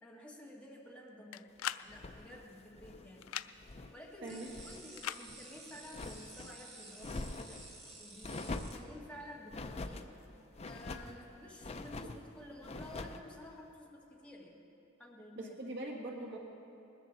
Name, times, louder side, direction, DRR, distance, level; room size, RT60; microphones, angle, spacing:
voice 1, 0.0-1.5 1.8-3.3 3.9-7.6 8.0-10.1 10.7-14.6 15.0-15.5, left 1 dB, 5° left, -4 dB, 1.9 m, -52 dB
sound 1, 1.3-1.9 3.2-3.5 5.0-5.2, left 11 dB, 85° left, 0.4 m, -39 dB
sound 2, 1.9-4.0 4.3-4.8 5.2-6.5 7.0-7.6 8.2-8.9 9.5-10.1 10.5-11.2 11.6-12.2 12.6-13.3, left 2 dB, 30° left, 0.5 m, -44 dB
sound 3, 4.3-8.7, right 2 dB, 35° right, 2.6 m, -53 dB
voice 2, 15.4-16.4, right 1 dB, 60° right, -1 dB, 1.8 m, -42 dB
20.0 x 14.0 x 4.0 m, 2.9 s
head